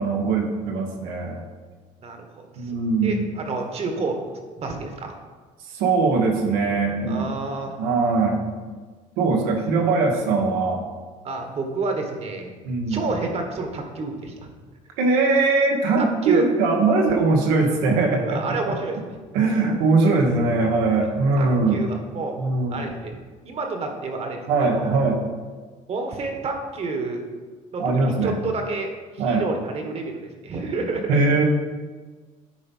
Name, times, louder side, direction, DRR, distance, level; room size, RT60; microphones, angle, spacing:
voice 1, 0.0-1.4 2.6-3.2 5.7-7.3 7.8-8.4 9.2-10.8 12.6-13.0 15.0-18.4 19.3-21.8 22.4-22.9 24.5-25.2 27.8-28.4 29.2-29.4 31.1-31.4, right 3 dB, 85° right, 2 dB, 1.4 m, -21 dB
voice 2, 2.0-2.7 3.0-5.1 7.0-7.8 11.2-12.5 12.9-14.5 16.0-16.5 18.3-19.2 20.9-21.1 21.4-22.4 22.7-23.1 23.4-25.0 25.9-27.2 27.7-31.2, right 3 dB, 45° right, 4 dB, 1.5 m, -30 dB
9.8 x 4.1 x 5.5 m, 1.4 s
cardioid pair, 100°, 15 cm